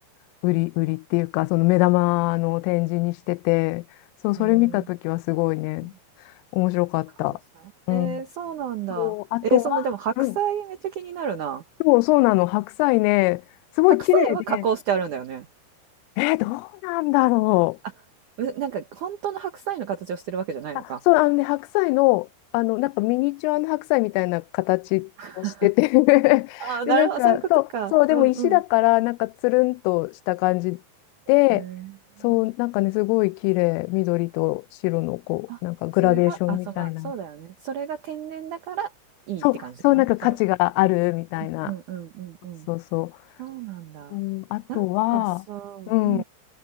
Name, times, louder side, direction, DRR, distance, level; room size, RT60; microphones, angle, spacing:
voice 1, 0.4-3.8 4.2-5.9 6.5-7.4 7.9-8.2 9.0-9.6 10.2-10.3 11.8-13.4 13.8-14.4 16.2-17.8 21.1-22.3 22.5-25.1 25.4-27.6 27.9-30.8 31.3-31.6 32.2-37.1 39.4-41.7 42.7-43.1 44.1-45.4 45.9-46.2, left 24 dB, 90° left, 3.1 m, -22 dB
voice 2, 4.4-4.9 7.3-7.4 7.9-9.2 9.4-11.6 14.1-15.5 18.4-21.0 25.2-25.7 26.6-27.4 27.7-28.6 31.5-31.9 32.2-32.4 35.5-35.6 36.0-38.9 39.3-40.4 41.4-42.7 43.4-44.2 44.7-46.2, right 7 dB, 80° right, 1.8 m, -30 dB
omnidirectional pair, 5.7 m